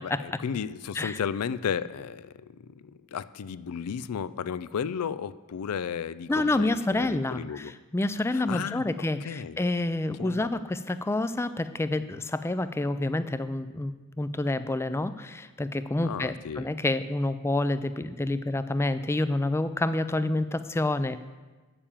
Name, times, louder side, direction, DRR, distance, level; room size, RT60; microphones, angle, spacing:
voice 1, 0.0-7.7 8.3-9.6 10.2-10.6 16.0-16.7, left 7 dB, 75° left, 16 dB, 0.4 m, -34 dB
voice 2, 6.3-21.2, left 2 dB, 10° left, 13 dB, 0.3 m, -28 dB
8.7 x 6.8 x 7.2 m, 1.3 s
head